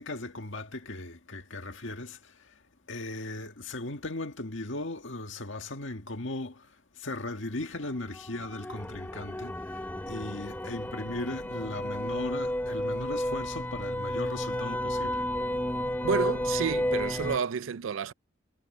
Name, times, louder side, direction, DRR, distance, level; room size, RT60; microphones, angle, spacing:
voice 1, 0.0-2.5 2.9-6.7 7.0-9.8 10.1-15.3, left 2 dB, 70° left, 1.9 m, -37 dB
sound 1, 7.6-17.4, left 1 dB, 10° left, 0.8 m, -32 dB
voice 2, 16.0-18.1, right 6 dB, 90° right, 0.5 m, -30 dB
head